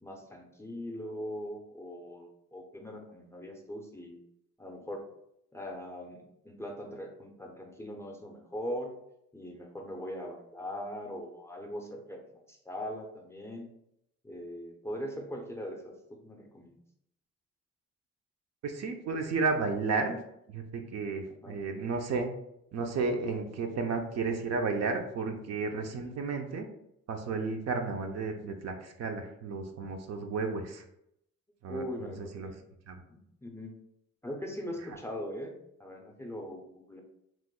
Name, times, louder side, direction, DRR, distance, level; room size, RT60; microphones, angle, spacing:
voice 1, 0.0-4.2 4.6-5.1 5.5-8.9 9.3-13.7 14.2-16.8 21.3-21.6 25.9-26.2 31.7-32.6 33.1-33.7 34.2-35.5 35.8-37.0, equal, 10° left, 1 dB, 0.5 m, -41 dB
voice 2, 18.6-20.2 20.5-22.3 22.7-26.7 27.1-30.8 31.6-32.5 32.9-33.0, right 4 dB, 60° right, 5 dB, 0.5 m, -33 dB
3.1 x 2.0 x 3.6 m, 0.78 s
cardioid pair, 90°, 30 cm